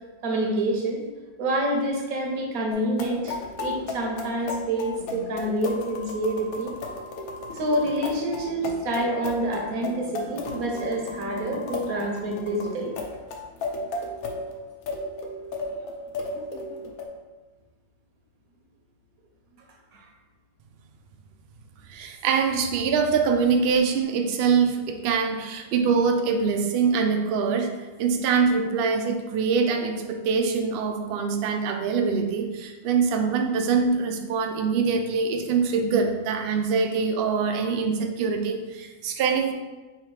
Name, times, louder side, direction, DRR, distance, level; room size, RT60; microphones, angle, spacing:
voice 1, 0.2-1.0 1.4-6.7 7.5-13.0 19.9-20.0, right 1 dB, 90° right, 1 dB, 1.3 m, -27 dB
sound 1, 2.7-17.1, left 2 dB, 90° left, 1.1 m, -35 dB
voice 2, 21.9-27.7 28.0-39.5, right 5 dB, 65° right, 4 dB, 0.6 m, -24 dB
3.5 x 2.7 x 4.6 m, 1.2 s
omnidirectional pair, 1.4 m